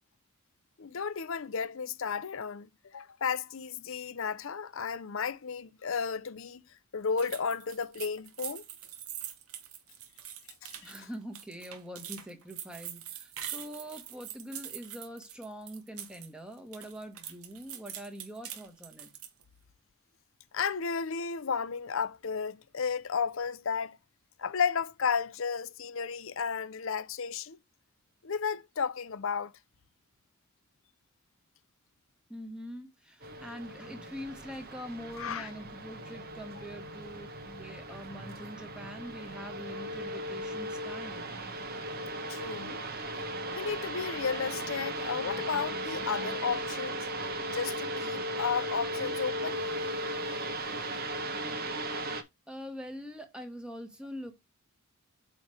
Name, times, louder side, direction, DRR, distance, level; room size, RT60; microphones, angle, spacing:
voice 1, 0.8-6.6 6.9-8.6 10.8-10.9 20.5-24.0 24.4-27.6 28.2-29.5 35.2-35.5 42.3-42.8 43.5-47.1 47.5-49.9 51.0-51.4, left 6 dB, 65° left, 0.6 m, -33 dB
sound 1, 7.2-16.3 16.6-19.4, right 10 dB, 80° right, 1.0 m, -44 dB
voice 2, 10.8-19.1 32.3-41.3 52.5-54.3, equal, 5° right, 1.3 m, -44 dB
sound 2, 33.2-52.2, right 1 dB, 45° right, 1.0 m, -37 dB
8.2 x 3.2 x 4.7 m
head